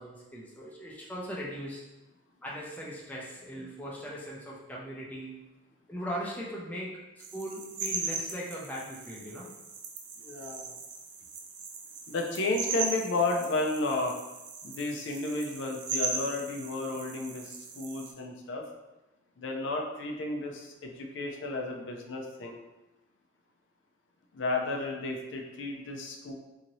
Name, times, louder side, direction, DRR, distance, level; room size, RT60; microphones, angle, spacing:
voice 1, 0.0-1.8 2.4-5.4 5.9-7.0 7.3-9.5, equal, 10° left, -5 dB, 0.4 m, -39 dB
sound 1, 7.2-18.1, right 4 dB, 60° right, 0.4 m, -38 dB
voice 2, 10.2-10.7 12.1-14.2 14.6-18.6 19.4-22.6 24.3-26.3, left 2 dB, 75° left, 2 dB, 0.4 m, -32 dB
2.8 x 2.6 x 3.0 m, 1.0 s
head